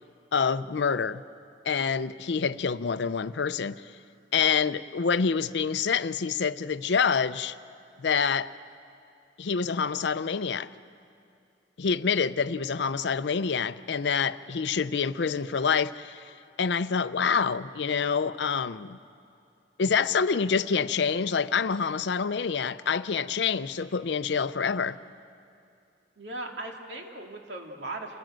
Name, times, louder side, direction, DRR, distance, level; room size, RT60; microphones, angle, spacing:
voice 1, 0.3-1.2 1.7-3.8 4.3-7.6 8.0-8.5 9.4-10.7 11.8-16.3 16.6-19.0 19.8-25.0, left 6 dB, 65° left, 14 dB, 0.5 m, -27 dB
voice 2, 26.2-28.2, right 2 dB, 70° right, 1 dB, 2.3 m, -38 dB
28.0 x 15.5 x 7.6 m, 2.6 s
head